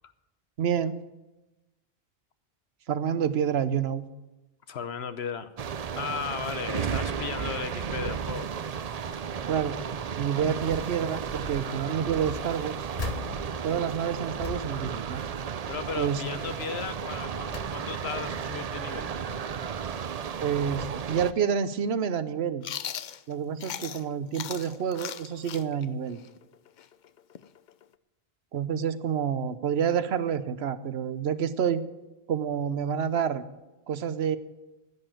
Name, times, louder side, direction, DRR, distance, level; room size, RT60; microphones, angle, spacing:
voice 1, 0.6-1.0 2.9-4.1 9.5-9.8 10.1-12.8 13.6-15.2 16.0-16.2 20.4-22.7 23.3-26.2 28.5-31.9 32.3-33.5 33.9-34.4, right 8 dB, 90° right, 13 dB, 1.0 m, -28 dB
voice 2, 4.7-5.5 5.9-8.5 15.7-19.1, left 7 dB, 85° left, 11 dB, 1.2 m, -35 dB
sound 1, 5.6-21.3, right 7 dB, 45° right, 0.6 m, -34 dB
sound 2, 11.1-11.7 12.1-15.8 16.2-16.5 17.0-18.3 18.8-19.7 20.4-20.6 20.8-20.9, left 3 dB, 40° left, 1.1 m, -41 dB
Chewing mastication, 22.6-24.1 24.3-27.9, left 9 dB, 55° left, 0.6 m, -38 dB
10.5 x 9.8 x 9.2 m, 1.0 s
omnidirectional pair, 1.0 m